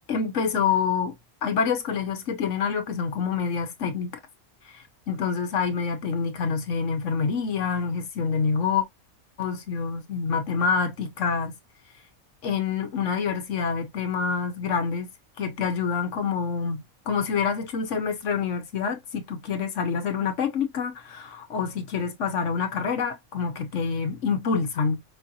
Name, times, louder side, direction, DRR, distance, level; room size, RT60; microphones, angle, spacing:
voice 1, 0.1-1.1 1.4-4.2 4.7-8.8 9.4-11.5 12.4-15.1 15.4-25.0, left 6 dB, 60° left, 1.0 m, -27 dB
5.2 x 2.5 x 2.7 m
omnidirectional pair, 1.5 m